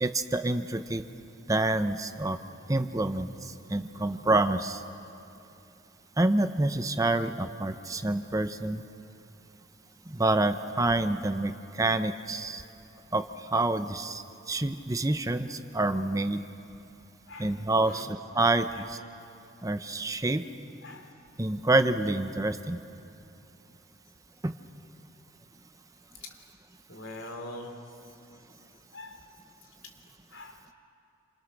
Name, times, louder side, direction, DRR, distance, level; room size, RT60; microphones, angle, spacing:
voice 1, 0.0-1.0 1.5-2.4 2.7-4.8 6.2-8.8 10.1-12.6 13.1-13.2 13.5-16.4 17.4-18.1 18.3-19.0 19.6-20.4 21.4-22.8 24.4-24.5, right 2 dB, 15° right, 10 dB, 0.7 m, -27 dB
voice 2, 3.9-4.2 17.3-17.5 17.8-18.1 18.7-18.8 20.8-21.1 26.9-27.7 28.9-29.2 30.3-30.6, left 1 dB, 85° left, 4 dB, 3.2 m, -43 dB
28.0 x 27.5 x 6.6 m, 2.8 s
head